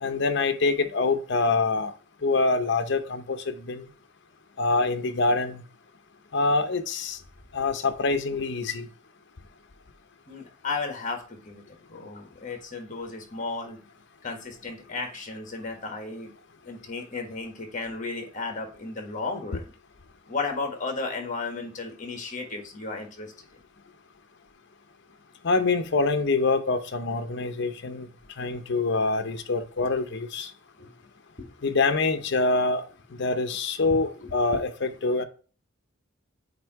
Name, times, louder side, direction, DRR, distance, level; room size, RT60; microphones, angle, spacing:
voice 1, 0.0-1.9 2.2-3.8 4.6-5.6 6.3-7.2 7.5-8.9 25.4-28.1 28.4-30.5 31.6-32.8 33.2-35.2, left 3 dB, 60° left, 8 dB, 0.7 m, -25 dB
voice 2, 10.3-13.8 14.2-16.3 16.6-19.7 20.3-23.3 30.8-30.9 31.4-31.5 33.8-33.9 34.5-34.6, left 3 dB, 40° left, 4 dB, 1.4 m, -34 dB
8.0 x 2.7 x 4.5 m, 0.39 s
head